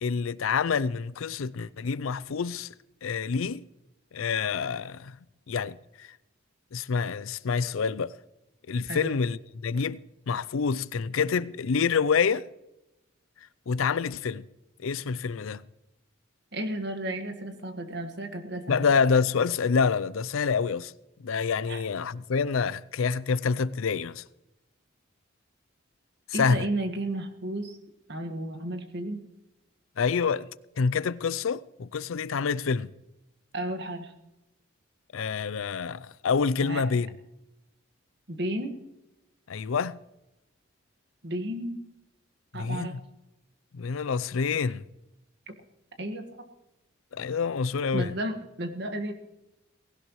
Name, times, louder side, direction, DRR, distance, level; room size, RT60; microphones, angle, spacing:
voice 1, 0.0-2.7 3.0-3.6 4.1-5.2 5.5-6.1 6.7-8.1 8.7-9.4 9.6-10.0 10.3-12.5 13.7-14.4 14.8-15.6 18.7-20.9 21.2-24.2 26.3-26.7 30.0-30.5 30.8-32.9 35.1-37.1 39.5-40.0 42.5-43.0 43.7-44.8 47.1-48.1, left 5 dB, 80° left, 0.5 m, -27 dB
voice 2, 16.5-18.9 21.7-21.8 26.3-27.8 28.1-29.2 33.5-34.1 36.6-36.8 38.3-38.8 41.2-41.8 42.5-43.0 45.5-45.6 46.0-46.3 47.9-49.1, right 1 dB, 55° right, 1.6 m, -33 dB
19.0 x 17.0 x 3.1 m
head